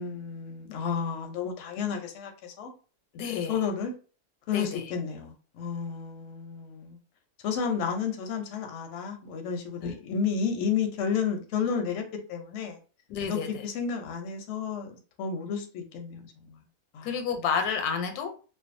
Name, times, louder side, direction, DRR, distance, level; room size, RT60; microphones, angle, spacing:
voice 1, 0.0-2.7 3.5-3.9 4.5-7.0 7.4-12.0 12.3-12.8 13.3-16.6 16.9-17.1, left 6 dB, 65° left, 4 dB, 0.8 m, -31 dB
voice 2, 3.1-3.6 4.5-4.9 9.8-9.9 13.1-13.5 17.0-18.3, left 6 dB, 85° left, 5 dB, 1.1 m, -30 dB
2.5 x 2.2 x 2.5 m, 0.37 s
omnidirectional pair, 1.6 m